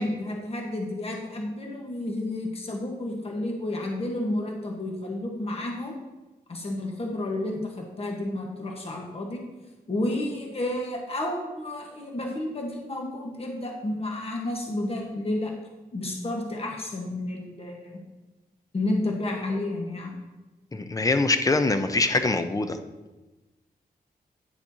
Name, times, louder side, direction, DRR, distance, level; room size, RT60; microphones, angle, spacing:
voice 1, 0.0-6.0 6.5-9.4 9.9-15.5 15.9-18.0 18.7-20.1, left 1 dB, 40° left, 0 dB, 1.3 m, -31 dB
voice 2, 20.7-22.8, left 3 dB, 20° left, 8 dB, 0.5 m, -23 dB
10.0 x 7.1 x 2.8 m, 1.1 s
wide cardioid pair, 140°, 16 cm